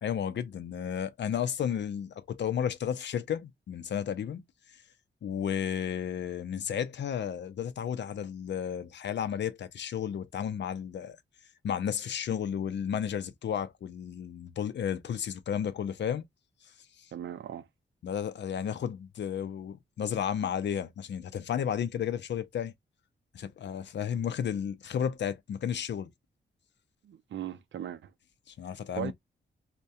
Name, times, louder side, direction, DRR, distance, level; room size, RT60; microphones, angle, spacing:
voice 1, 0.0-4.4 5.2-11.2 11.6-16.3 17.0-17.1 18.0-22.7 23.3-26.1 28.5-29.1, left 8 dB, 65° left, 0.4 m, -33 dB
voice 2, 17.1-17.7 27.0-28.1 29.0-29.1, right 10 dB, 70° right, 0.4 m, -38 dB
2.2 x 2.1 x 2.6 m
cardioid pair, 75°, 20 cm